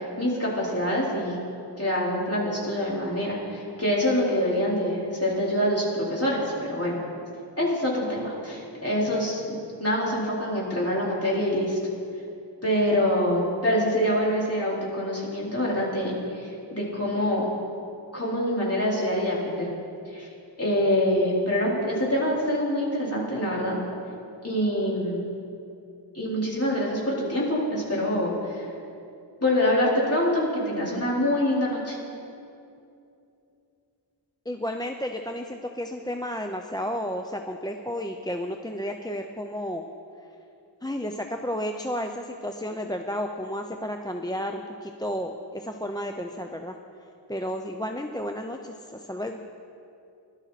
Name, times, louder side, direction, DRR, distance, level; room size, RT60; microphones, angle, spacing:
voice 1, 0.2-1.4 1.8-7.0 7.6-11.8 12.6-17.5 18.1-19.7 20.1-20.3 20.6-23.8 24.4-25.2 26.1-28.6 29.4-32.0, equal, 30° left, -6 dB, 4.2 m, -25 dB
voice 2, 34.5-39.8 40.8-46.8 47.3-49.4, equal, 10° left, 3 dB, 0.7 m, -32 dB
21.0 x 12.5 x 4.2 m, 2.7 s
wide cardioid pair, 45°, 45 cm